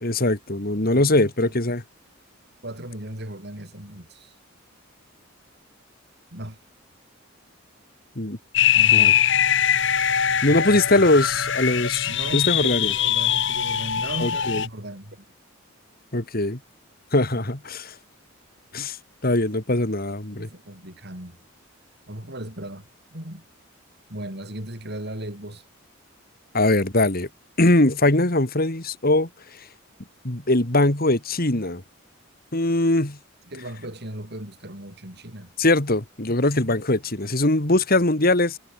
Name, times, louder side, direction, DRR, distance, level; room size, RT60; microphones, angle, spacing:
voice 1, 0.0-1.8 8.2-8.4 8.9-9.1 10.4-12.9 14.2-14.6 16.1-16.6 17.1-17.9 18.7-19.0 19.2-20.5 26.5-27.3 27.6-29.3 30.2-31.8 32.5-33.2 35.6-38.6, left 2 dB, 45° left, 2.6 m, -21 dB
voice 2, 0.8-1.6 2.6-4.3 6.3-6.6 8.7-9.4 10.5-11.1 12.1-15.2 17.3-17.4 20.3-21.4 22.1-23.5 24.1-25.6 33.4-35.5, right 1 dB, 50° right, 6.3 m, -37 dB
sound 1, 8.5-14.7, left 9 dB, 60° left, 2.5 m, -22 dB
head